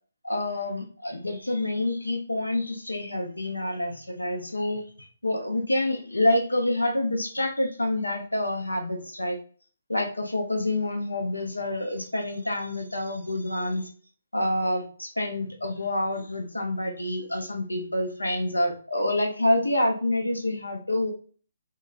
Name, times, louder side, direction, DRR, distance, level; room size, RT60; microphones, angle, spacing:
voice 1, 0.2-4.8 5.2-9.4 9.9-13.9 14.3-21.1, left 1 dB, 90° left, 3 dB, 0.8 m, -27 dB
2.9 x 2.5 x 2.5 m, 0.42 s
figure-of-eight pair, 140°, 0 cm